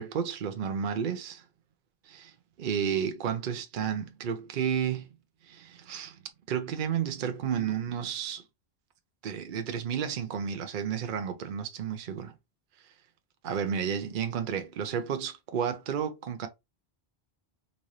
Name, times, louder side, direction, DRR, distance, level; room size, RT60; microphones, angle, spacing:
voice 1, 0.0-1.4 2.0-5.1 5.4-6.2 6.5-8.4 9.2-12.3 12.8-12.9 13.4-16.5, right 8 dB, 60° right, 0.7 m, -32 dB
4.0 x 2.5 x 3.0 m
omnidirectional pair, 1.0 m